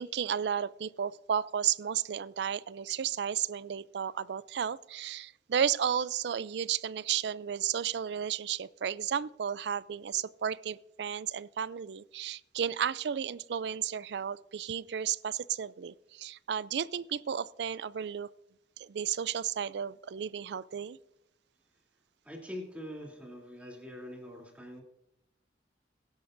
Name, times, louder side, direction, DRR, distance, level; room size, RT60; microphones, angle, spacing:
voice 1, 0.0-18.3 18.8-21.0, right 8 dB, 65° right, 19 dB, 0.4 m, -33 dB
voice 2, 22.2-24.8, left 1 dB, 10° right, -2 dB, 3.0 m, -44 dB
22.0 x 11.0 x 2.6 m, 0.89 s
head